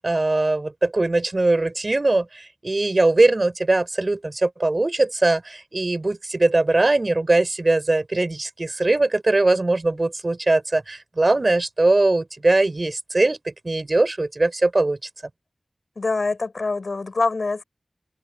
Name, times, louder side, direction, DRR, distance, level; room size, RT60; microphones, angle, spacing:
voice 1, 0.0-15.0, right 2 dB, 45° right, 5.0 m, -21 dB
voice 2, 16.0-17.6, left 3 dB, 75° left, 6.9 m, -24 dB
wide cardioid pair, 75°, 0 cm